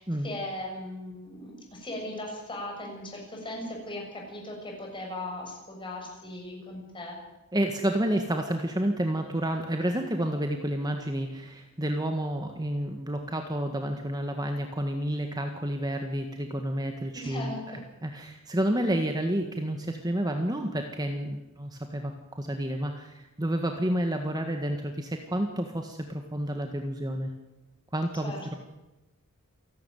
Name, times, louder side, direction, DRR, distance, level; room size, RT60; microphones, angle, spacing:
voice 1, 0.0-7.2 17.1-17.8 28.2-28.5, left 1 dB, 25° left, 1 dB, 6.7 m, -38 dB
voice 2, 7.5-27.3 27.9-28.5, right 1 dB, 20° right, 4 dB, 1.7 m, -30 dB
28.5 x 12.5 x 9.3 m, 1.0 s
head